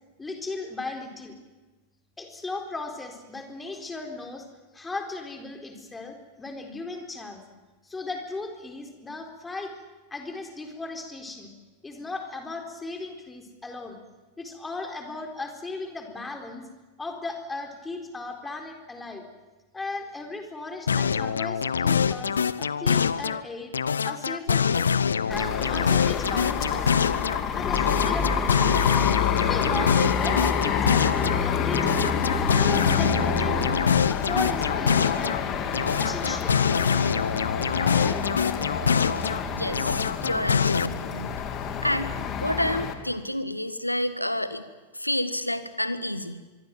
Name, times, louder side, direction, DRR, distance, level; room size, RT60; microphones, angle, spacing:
voice 1, 0.2-1.4 2.2-4.5 4.7-7.4 7.8-9.7 10.1-11.5 11.8-14.0 14.4-16.7 17.0-19.2 19.7-23.7 24.0-24.9 25.3-27.2 27.5-28.7 29.3-32.2 32.5-33.5 34.1-35.4 36.0-36.6 37.8-38.2, left 3 dB, 10° left, 3 dB, 4.2 m, -36 dB
sound 1, 20.9-23.4 23.7-27.4 27.7-31.4 31.7-35.4 35.7-39.4 39.7-40.9, left 6 dB, 70° left, 0.7 m, -25 dB
sound 2, 25.3-42.9, left 6 dB, 30° left, 2.8 m, -28 dB
voice 2, 39.6-41.4 41.8-42.1 42.4-44.6 44.9-46.4, left 1 dB, 85° left, 12 dB, 1.5 m, -29 dB
25.0 x 23.5 x 7.8 m, 1.2 s
figure-of-eight pair, 90°, 0 cm